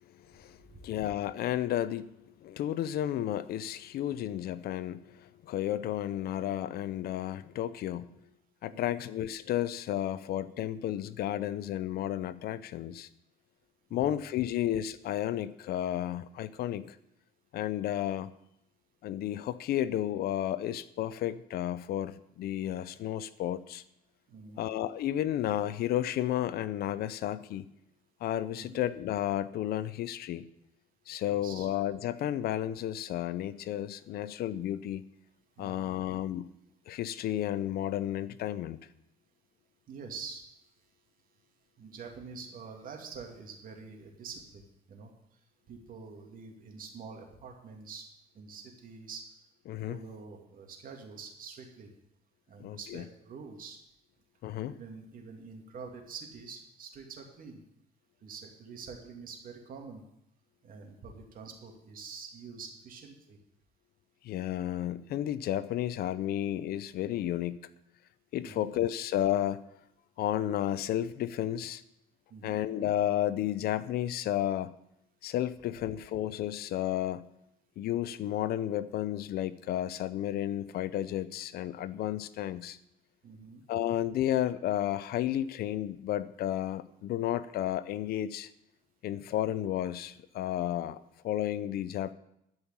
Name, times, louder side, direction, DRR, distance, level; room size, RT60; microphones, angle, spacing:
voice 1, 0.3-8.1 8.6-13.1 13.9-17.0 17.5-18.3 19.0-23.8 24.6-27.7 28.2-30.5 31.1-35.0 35.6-36.5 36.9-38.8 49.7-50.0 52.6-53.0 54.4-54.8 64.2-67.7 68.3-69.6 70.2-71.8 72.4-74.7 75.2-77.2 77.8-82.8 83.7-88.5 89.0-92.1, left 12 dB, 70° left, 16 dB, 0.6 m, -32 dB
voice 2, 8.7-9.0 13.9-14.2 24.3-24.7 28.6-28.8 31.2-31.7 35.6-35.9 39.9-40.4 41.8-44.6 44.9-45.1 45.7-48.1 48.3-49.2 49.9-51.9 52.5-53.8 54.7-57.6 58.2-60.0 60.6-63.4 68.4-68.7 72.3-72.6 83.2-83.6, right 5 dB, 55° right, 3 dB, 2.6 m, -46 dB
13.0 x 5.6 x 8.7 m, 0.79 s
cardioid pair, 110°, 17 cm